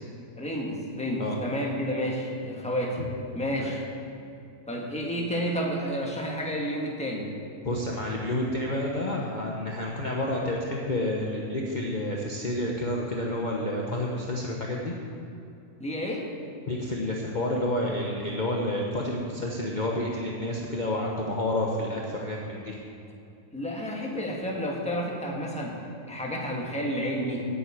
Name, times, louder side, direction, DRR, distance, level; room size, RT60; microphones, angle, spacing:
voice 1, 0.3-3.0 3.3-3.8 4.7-7.3 15.8-16.3 23.5-25.8 26.1-27.5, equal, 5° left, -2 dB, 1.4 m, -30 dB
voice 2, 7.6-14.9 16.7-22.8, left 1 dB, 35° left, -2 dB, 1.1 m, -29 dB
9.5 x 7.8 x 8.6 m, 2.7 s
omnidirectional pair, 1.6 m